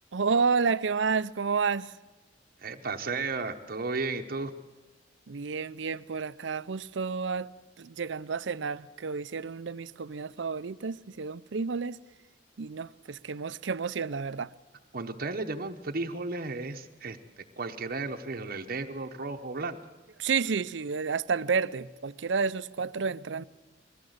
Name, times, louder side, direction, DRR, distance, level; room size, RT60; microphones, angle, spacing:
voice 1, 0.1-1.9 5.3-7.5 7.8-12.0 12.6-14.5 20.2-23.4, right 5 dB, 75° right, 0.6 m, -30 dB
voice 2, 2.6-4.5 14.9-19.8, right 3 dB, 50° right, 0.9 m, -34 dB
22.0 x 16.0 x 7.9 m
head